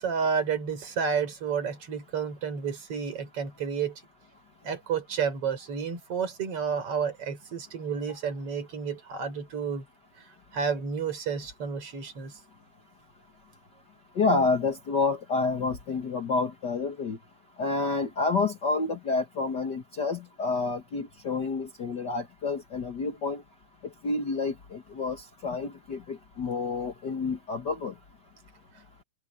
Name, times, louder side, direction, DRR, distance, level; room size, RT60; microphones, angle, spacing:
voice 1, 0.0-4.0 4.6-9.9 10.2-10.3 10.5-12.4, right 6 dB, 35° right, 5.3 m, -31 dB
voice 2, 14.1-17.2 17.6-23.4 24.0-27.9, left 4 dB, 75° left, 0.9 m, -29 dB
omnidirectional pair, 4.4 m